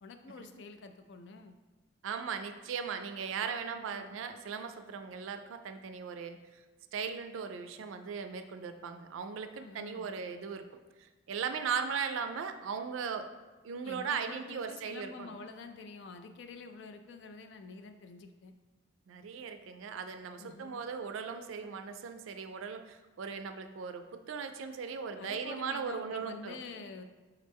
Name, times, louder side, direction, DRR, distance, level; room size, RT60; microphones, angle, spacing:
voice 1, 0.0-1.6 3.9-4.1 9.5-10.1 13.8-18.5 20.4-20.8 25.2-27.0, left 4 dB, 60° left, 7 dB, 0.3 m, -47 dB
voice 2, 2.0-6.4 6.9-10.6 11.0-13.2 13.6-15.3 19.1-26.6, right 6 dB, 85° right, 8 dB, 0.4 m, -38 dB
4.7 x 3.2 x 3.4 m, 1.2 s
head